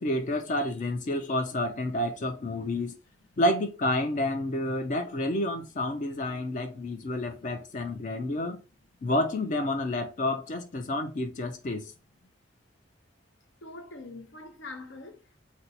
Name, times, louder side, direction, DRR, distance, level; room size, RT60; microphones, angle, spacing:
voice 1, 0.0-3.0 3.4-8.6 9.0-11.9, left 1 dB, 40° left, 0.4 m, -29 dB
voice 2, 13.6-15.4, left 2 dB, 75° left, 0.7 m, -44 dB
2.7 x 2.2 x 4.0 m
head